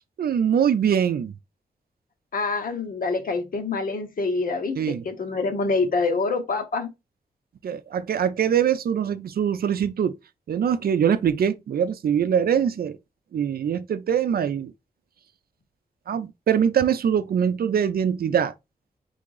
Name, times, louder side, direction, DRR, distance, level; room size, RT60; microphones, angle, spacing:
voice 1, 0.2-1.3 4.8-5.0 7.6-10.1 10.5-13.0 13.3-14.7 16.1-18.5, right 8 dB, 85° right, 0.5 m, -23 dB
voice 2, 2.3-6.9, left 3 dB, 65° left, 0.9 m, -26 dB
3.7 x 3.4 x 3.8 m
wide cardioid pair, 160°, 15 cm